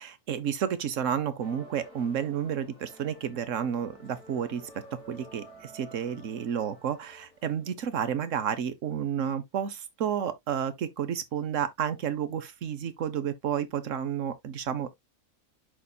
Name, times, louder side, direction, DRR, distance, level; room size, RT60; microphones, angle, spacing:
voice 1, 0.0-4.7 5.1-14.9, right 8 dB, 60° right, 1.1 m, -31 dB
sound 1, 1.4-8.0, right 1 dB, 85° left, 3.7 m, -51 dB
11.0 x 4.2 x 2.2 m
omnidirectional pair, 1.6 m